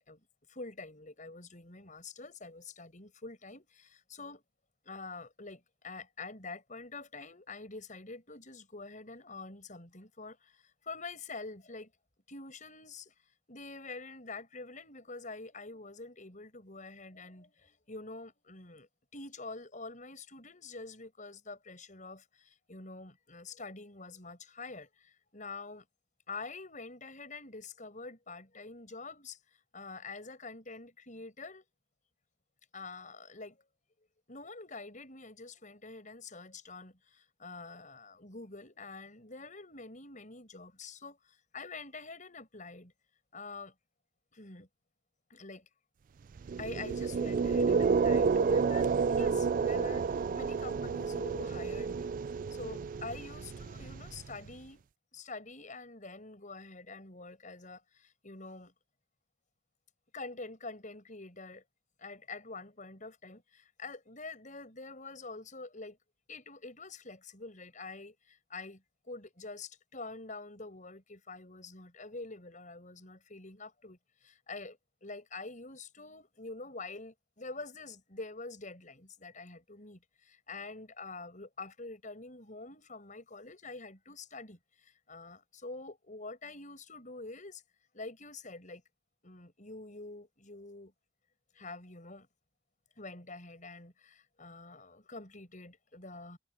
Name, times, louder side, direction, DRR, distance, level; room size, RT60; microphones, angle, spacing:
voice 1, 0.0-4.4 4.8-11.9 12.3-13.1 13.5-25.8 26.3-29.4 29.7-31.6 32.7-33.6 34.3-42.9 43.3-43.7 44.3-44.7 45.3-45.7 46.6-52.1 52.4-54.8 55.1-58.7 60.1-61.6 62.0-66.0 66.3-87.6 87.9-88.8 89.2-90.9 91.5-92.3 93.0-96.4, left 3 dB, 40° left, 7.2 m, -46 dB
sound 1, 46.4-54.5, right 5 dB, 45° right, 0.3 m, -30 dB
head